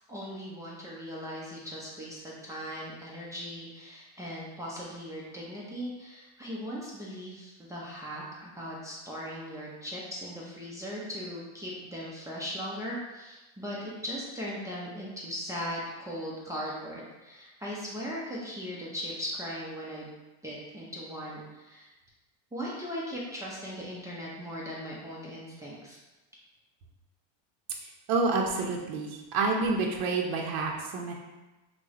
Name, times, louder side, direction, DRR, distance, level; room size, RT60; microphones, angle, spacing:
voice 1, 0.1-20.1 20.4-21.9 22.5-26.0, equal, 5° right, -6 dB, 0.4 m, -38 dB
voice 2, 28.1-31.1, right 3 dB, 50° right, 0 dB, 0.6 m, -28 dB
3.1 x 2.1 x 3.6 m, 1.1 s
supercardioid pair, 125°, 47 cm